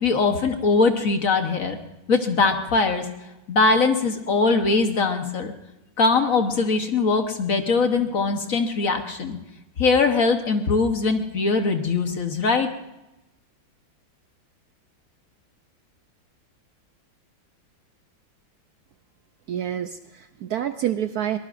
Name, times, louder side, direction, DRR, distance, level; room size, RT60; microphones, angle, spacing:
voice 1, 0.0-1.8 2.1-3.1 3.5-5.5 6.0-9.4 9.8-12.7, left 4 dB, 50° left, 6 dB, 1.4 m, -21 dB
voice 2, 19.5-21.4, right 10 dB, 65° right, 9 dB, 1.0 m, -27 dB
23.5 x 19.5 x 2.6 m, 0.95 s
omnidirectional pair, 2.1 m